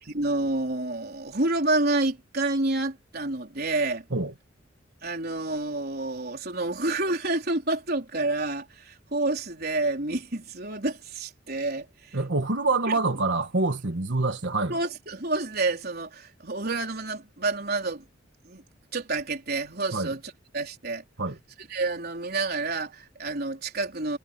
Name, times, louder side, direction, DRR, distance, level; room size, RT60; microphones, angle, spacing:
voice 1, 0.0-4.0 5.0-12.2 12.9-13.0 14.7-18.0 18.4-18.6 18.9-20.2 20.5-21.0 21.6-24.2, right 2 dB, 55° right, 4.2 m, -29 dB
voice 2, 12.1-14.7 19.9-20.1 21.2-21.4, right 3 dB, 70° right, 1.4 m, -26 dB
head